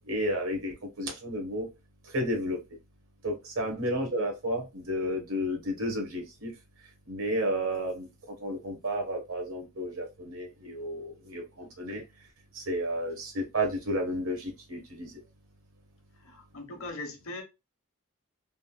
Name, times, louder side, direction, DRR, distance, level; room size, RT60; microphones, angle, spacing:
voice 1, 0.1-1.7 2.1-2.6 3.2-6.5 7.1-12.0 12.5-15.1, equal, 80° right, 1.1 m, -32 dB
voice 2, 16.2-17.4, left 2 dB, 65° left, 0.9 m, -40 dB
3.5 x 2.2 x 2.2 m
head